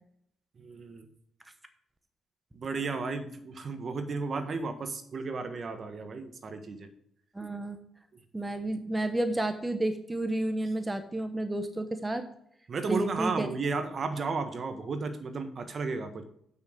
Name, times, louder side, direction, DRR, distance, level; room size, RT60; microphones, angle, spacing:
voice 1, 0.6-1.1 2.5-6.9 12.7-16.2, right 4 dB, 45° right, 8 dB, 1.5 m, -33 dB
voice 2, 7.3-7.8 8.3-12.2 12.9-13.5, right 1 dB, 15° right, 8 dB, 1.0 m, -31 dB
7.9 x 6.4 x 7.8 m, 0.72 s
cardioid pair, 90°, 0 cm